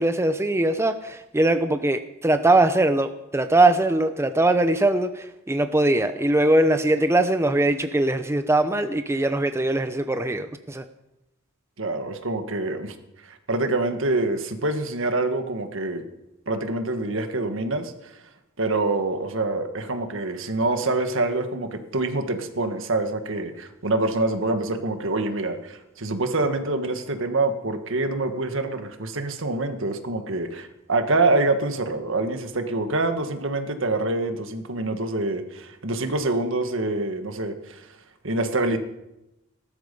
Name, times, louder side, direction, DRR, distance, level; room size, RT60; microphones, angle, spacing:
voice 1, 0.0-10.8, right 2 dB, 15° right, 9 dB, 0.6 m, -21 dB
voice 2, 11.8-13.0 13.2-16.1 16.5-18.1 18.6-38.0 38.2-38.8, right 2 dB, 65° right, 7 dB, 1.7 m, -26 dB
18.5 x 12.5 x 5.4 m, 0.91 s
head